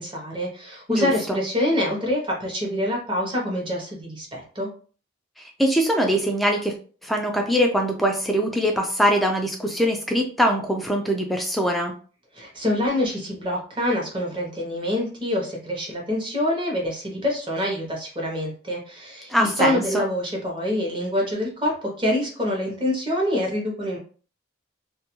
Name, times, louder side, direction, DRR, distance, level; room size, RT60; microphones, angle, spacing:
voice 1, 0.0-4.7 12.3-21.7 22.0-24.0, left 1 dB, 25° right, -1 dB, 0.7 m, -26 dB
voice 2, 0.9-1.4 5.4-6.7 7.0-11.9 19.3-20.1, equal, ahead, 1 dB, 0.3 m, -22 dB
2.3 x 2.3 x 2.9 m, 0.40 s
head